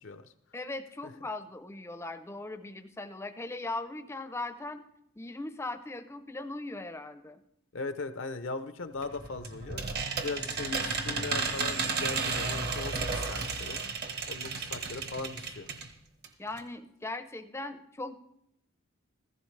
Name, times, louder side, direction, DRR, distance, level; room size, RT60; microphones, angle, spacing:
voice 1, 0.5-4.8 5.2-7.4 16.4-18.1, left 2 dB, 10° left, 10 dB, 0.6 m, -39 dB
voice 2, 7.7-9.8 10.2-13.8 14.3-15.7, left 3 dB, 60° left, 11 dB, 0.7 m, -38 dB
sound 1, 9.0-15.9 16.2-16.3 16.6-16.7, right 4 dB, 50° right, 1.2 m, -33 dB
15.0 x 14.5 x 3.3 m, 0.77 s
head